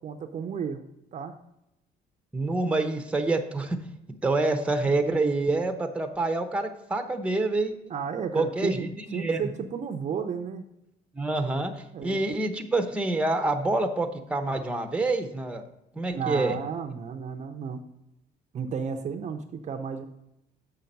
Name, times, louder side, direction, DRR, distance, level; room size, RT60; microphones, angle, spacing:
voice 1, 0.0-0.8 1.1-1.3 7.9-10.6 11.9-12.2 16.1-17.8 18.5-20.1, right 6 dB, 45° right, 6 dB, 0.6 m, -33 dB
voice 2, 2.3-3.8 4.2-7.7 8.3-9.5 11.2-15.6 16.0-16.6, right 2 dB, 5° right, 6 dB, 0.8 m, -27 dB
6.9 x 5.7 x 5.3 m, 0.84 s
cardioid pair, 110°, 17 cm